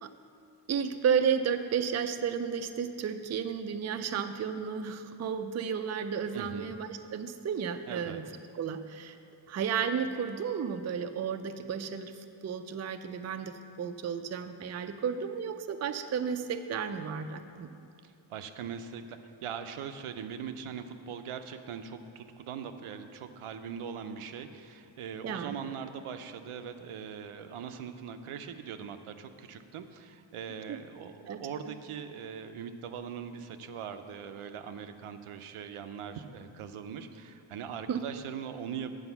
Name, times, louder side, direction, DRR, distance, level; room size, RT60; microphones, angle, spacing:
voice 1, 0.7-8.2 8.5-9.2 9.5-12.1 12.4-17.7 25.2-25.5 30.7-30.8 31.3-31.4 37.9-38.0, right 7 dB, 35° right, 8 dB, 0.4 m, -32 dB
voice 2, 6.3-6.7 7.9-8.2 18.0-38.9, right 7 dB, 85° right, 8 dB, 0.6 m, -41 dB
8.0 x 4.9 x 6.9 m, 2.5 s
wide cardioid pair, 110°, 50 cm